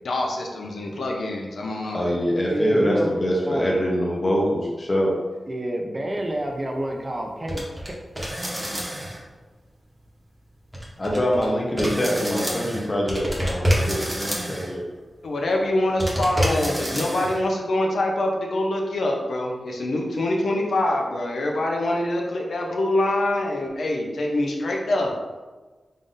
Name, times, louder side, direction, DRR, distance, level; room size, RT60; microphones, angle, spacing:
voice 1, 0.0-2.1 15.2-25.1, left 1 dB, 80° left, 0 dB, 0.6 m, -25 dB
voice 2, 1.9-5.1 11.0-14.8, equal, 30° left, -3 dB, 0.8 m, -24 dB
voice 3, 2.5-3.2 3.4-3.9 4.6-4.7 5.5-7.9, right 1 dB, 30° right, 1 dB, 0.5 m, -29 dB
sound 1, 7.5-7.9 8.2-9.2 10.7-11.5 11.8-14.7 16.0-17.4, equal, 15° right, 0.9 m, -27 dB
3.8 x 2.5 x 3.7 m, 1.3 s
wide cardioid pair, 120°, 0 cm